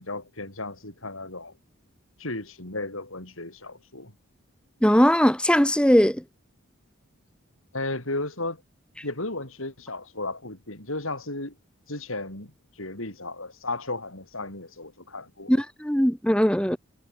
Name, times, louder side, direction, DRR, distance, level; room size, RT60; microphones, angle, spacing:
voice 1, 0.0-1.5 2.2-4.1 7.7-8.6 9.0-11.5 11.9-15.5, left 2 dB, 70° left, 6.6 m, -34 dB
voice 2, 4.8-6.2 15.5-16.8, equal, 5° left, 1.5 m, -20 dB
head